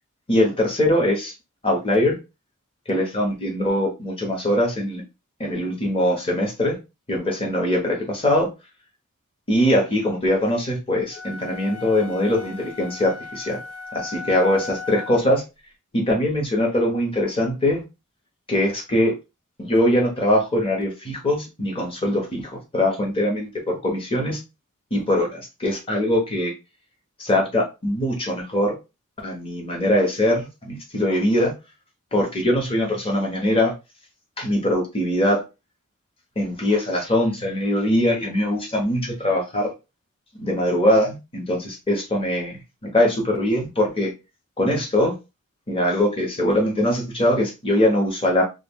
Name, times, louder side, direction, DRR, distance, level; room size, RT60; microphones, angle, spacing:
voice 1, 0.3-1.3 1.6-2.2 2.9-5.0 5.4-6.8 7.1-8.5 9.5-13.6 13.9-15.4 15.9-17.8 18.5-19.1 19.6-24.4 24.9-26.5 27.2-28.8 29.2-31.5 32.1-33.7 34.4-35.4 36.4-39.7 40.4-42.6 42.9-44.1 44.6-45.1 45.7-48.4, left 1 dB, 25° left, 1.0 m, -22 dB
sound 1, 11.1-15.4, left 4 dB, 65° left, 0.5 m, -37 dB
2.4 x 2.4 x 3.5 m
head